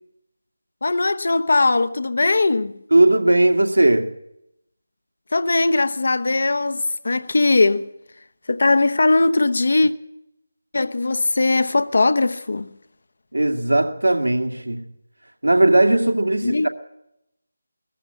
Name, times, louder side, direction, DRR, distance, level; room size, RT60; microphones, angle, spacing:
voice 1, 0.8-2.7 5.3-7.9 8.5-9.9 10.7-12.7 16.4-16.7, left 3 dB, 50° left, 0.9 m, -19 dB
voice 2, 2.9-4.1 13.3-14.9 15.4-16.7, right 2 dB, 75° right, 2.4 m, -17 dB
20.5 x 14.5 x 8.8 m
figure-of-eight pair, 160°, 0 cm